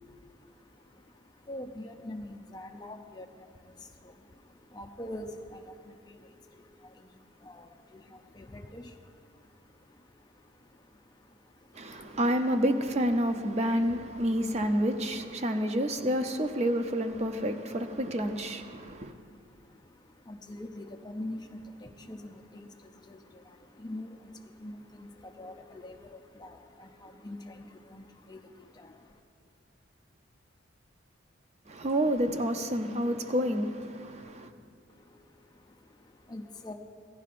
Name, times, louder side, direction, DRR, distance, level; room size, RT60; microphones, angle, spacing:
voice 1, 0.0-12.2 15.4-15.7 18.7-29.2 34.9-36.7, left 1 dB, 20° left, 0.4 m, -46 dB
voice 2, 11.7-19.1 31.7-34.5, equal, 35° right, 0.5 m, -29 dB
17.0 x 11.0 x 2.5 m
head